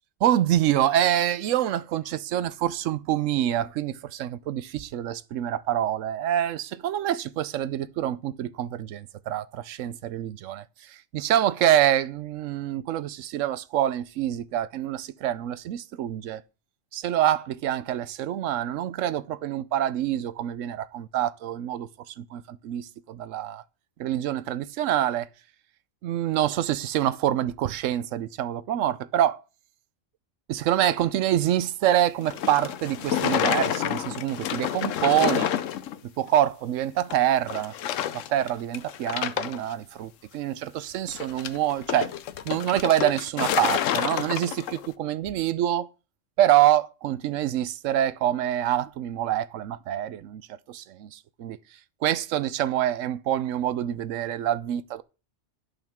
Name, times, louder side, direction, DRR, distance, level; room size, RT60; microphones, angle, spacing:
voice 1, 0.2-16.4 16.9-23.6 24.0-25.3 26.0-29.4 30.5-35.5 36.2-37.7 38.1-42.1 42.4-45.9 46.4-50.4 50.7-51.6 52.0-55.0, right 12 dB, 80° right, 1.0 m, -26 dB
sound 1, 32.2-36.0 36.3-36.4 37.1-37.2 37.5-38.5 38.7-39.7 41.1-44.9, left 10 dB, 80° left, 1.0 m, -28 dB
16.5 x 5.5 x 3.6 m
omnidirectional pair, 1.3 m